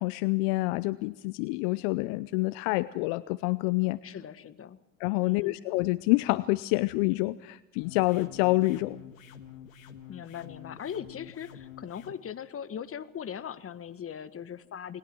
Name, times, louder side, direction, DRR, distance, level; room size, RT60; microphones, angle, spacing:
voice 1, 0.0-4.0 5.0-9.0, left 22 dB, 65° left, 17 dB, 0.7 m, -27 dB
voice 2, 4.0-4.8 5.2-5.6 10.1-15.0, left 8 dB, 35° left, 12 dB, 1.6 m, -40 dB
sound 1, 7.8-12.2, left 9 dB, 85° left, 1.8 m, -48 dB
29.0 x 21.5 x 4.6 m, 1.0 s
hypercardioid pair, 70°, 39 cm